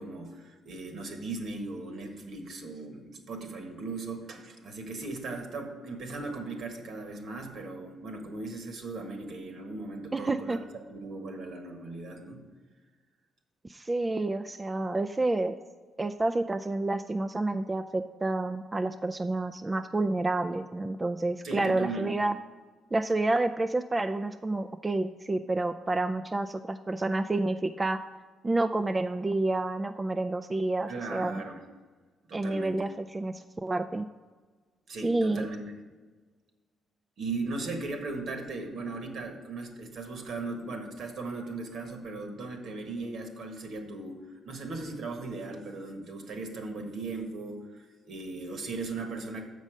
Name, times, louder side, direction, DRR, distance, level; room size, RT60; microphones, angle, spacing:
voice 1, 0.0-12.4 21.4-22.1 30.9-31.6 32.3-32.8 34.9-35.7 37.2-49.5, right 3 dB, 70° right, 4 dB, 1.4 m, -38 dB
voice 2, 10.1-10.6 13.7-15.5 16.0-22.4 22.9-28.0 28.4-31.4 32.3-34.1 35.0-35.5, right 2 dB, 20° right, 8 dB, 0.3 m, -29 dB
7.2 x 5.3 x 6.3 m, 1.4 s
cardioid pair, 100°, 0 cm